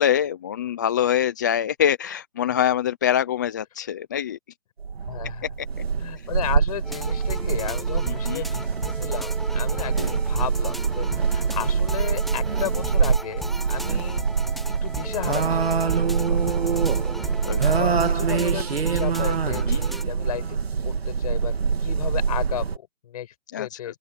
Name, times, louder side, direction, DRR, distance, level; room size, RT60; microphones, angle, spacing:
voice 1, 0.0-4.4 8.1-8.4 10.0-10.1 17.4-17.6 17.9-18.0 19.7-19.8 23.5-23.9, left 10 dB, 20° left, 0.6 m, -24 dB
sound 1, 4.8-22.8, right 6 dB, 75° right, 2.7 m, -24 dB
voice 2, 5.1-5.4 6.0-14.3 14.8-16.7 17.6-20.6 20.8-21.5 21.8-24.0, left 11 dB, 40° left, 8.0 m, -34 dB
sound 2, 6.8-20.0, left 1 dB, ahead, 1.0 m, -37 dB
open air
hypercardioid pair, 160°, 31 cm